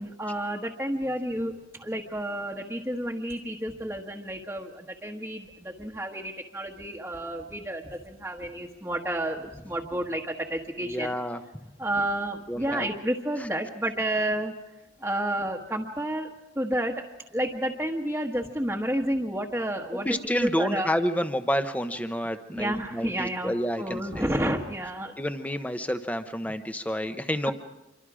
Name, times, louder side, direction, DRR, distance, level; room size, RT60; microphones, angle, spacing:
voice 1, 0.0-11.2 11.8-14.5 15.0-16.3 16.5-17.0 17.3-20.9 22.5-23.5 23.8-25.1 27.5-27.6, right 1 dB, 10° right, -3 dB, 1.4 m, -30 dB
voice 2, 10.8-11.4 12.5-12.9 19.9-24.4 25.2-27.5, equal, 10° left, 8 dB, 1.0 m, -29 dB
27.0 x 24.0 x 5.0 m, 0.98 s
head